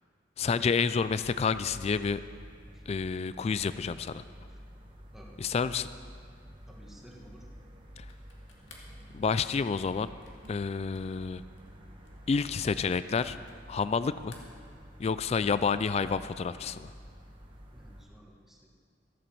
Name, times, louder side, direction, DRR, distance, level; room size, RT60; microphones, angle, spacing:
voice 1, 0.4-2.2 2.9-4.2 5.4-5.9 8.0-8.1 9.1-10.1 10.5-11.4 12.3-13.4 13.7-14.3 15.0-16.9, left 5 dB, 35° left, 14 dB, 0.3 m, -29 dB
sound 1, 0.9-18.0, equal, 30° right, 1.2 m, -50 dB
voice 2, 5.1-5.6 6.7-7.4 17.7-18.7, equal, ahead, -2 dB, 1.6 m, -53 dB
sound 2, 8.0-14.0 14.2-15.3, left 4 dB, 80° left, 1.9 m, -59 dB
13.5 x 7.8 x 7.0 m, 2.1 s
head